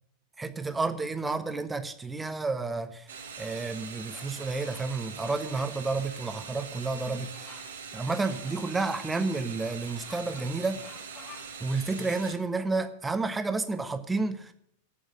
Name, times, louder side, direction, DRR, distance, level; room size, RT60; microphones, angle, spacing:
voice 1, 0.4-3.0 3.4-7.3 7.9-10.8 11.6-14.5, right 3 dB, 10° right, 9 dB, 1.2 m, -31 dB
sound 1, 3.1-12.3, right 5 dB, 65° right, 2.1 m, -42 dB
Bird vocalization bird call bird song, 3.4-3.8 4.1-4.4 4.6-4.9 5.2-5.8 6.1-6.3 7.3-7.7 8.2-9.4 9.8-11.7, left 4 dB, 25° left, 3.0 m, -52 dB
13.0 x 7.0 x 7.8 m, 0.69 s
figure-of-eight pair, 90°, 0 cm